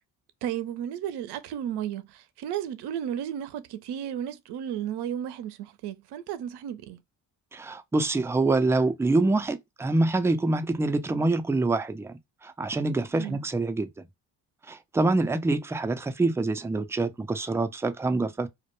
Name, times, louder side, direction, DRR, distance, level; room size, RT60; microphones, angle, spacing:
voice 1, 0.4-7.0 13.1-13.4, right 10 dB, 65° right, 0.5 m, -33 dB
voice 2, 7.5-12.1 12.4-14.1 14.7-18.5, right 2 dB, 5° right, 0.3 m, -26 dB
2.1 x 2.1 x 2.9 m
supercardioid pair, 50°, 43 cm